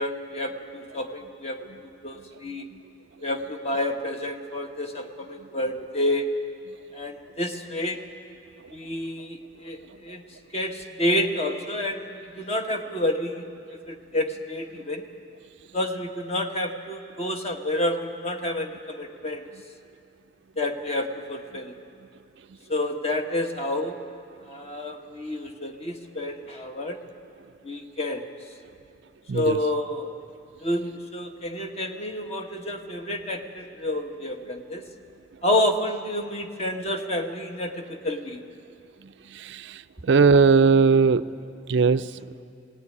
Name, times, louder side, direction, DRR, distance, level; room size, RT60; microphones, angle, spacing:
voice 1, 0.0-2.7 3.2-6.3 6.9-8.0 8.7-10.2 10.5-15.0 15.7-19.4 20.6-21.7 22.7-24.0 24.4-27.0 27.6-28.3 29.3-30.1 30.6-34.9 35.4-38.4, left 1 dB, 35° left, 4 dB, 1.4 m, -29 dB
voice 2, 39.3-39.8 40.0-41.3 41.7-42.1, right 5 dB, 75° right, 12 dB, 0.5 m, -18 dB
19.0 x 18.0 x 9.7 m, 2.4 s
head